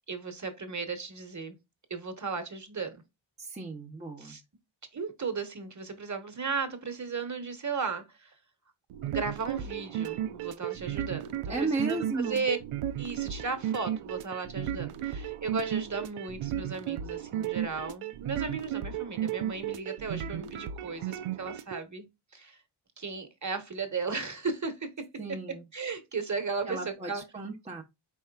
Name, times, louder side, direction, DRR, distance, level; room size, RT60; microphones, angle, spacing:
voice 1, 0.1-1.6 1.9-2.9 4.2-4.4 4.9-8.3 9.0-12.6 13.0-22.1 22.3-22.6 23.0-25.1 25.7-27.2, right 4 dB, 35° right, 1.3 m, -35 dB
voice 2, 3.4-4.4 11.5-12.4 25.2-25.6 26.7-27.8, right 3 dB, 15° right, 0.8 m, -34 dB
sound 1, 8.9-21.8, right 11 dB, 85° right, 0.6 m, -34 dB
4.5 x 4.1 x 2.3 m
cardioid pair, 60°, 50 cm